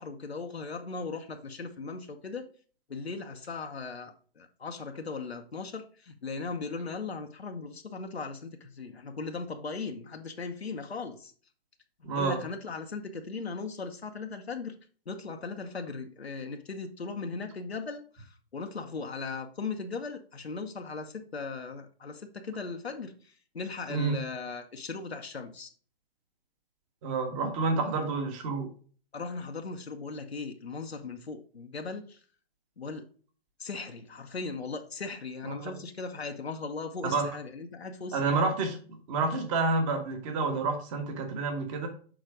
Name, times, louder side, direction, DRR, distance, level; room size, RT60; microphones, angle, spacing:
voice 1, 0.0-2.5 2.9-11.3 12.1-14.7 15.1-23.1 23.5-25.7 29.1-32.2 32.8-33.0 33.6-38.4, left 4 dB, 85° left, 4 dB, 0.9 m, -38 dB
voice 2, 12.0-12.4 23.9-24.2 27.0-28.7 35.5-35.7 37.1-37.2 38.1-38.8 39.1-41.9, right 3 dB, 30° right, 5 dB, 1.4 m, -29 dB
6.3 x 4.0 x 4.9 m, 0.42 s
figure-of-eight pair, 125°, 31 cm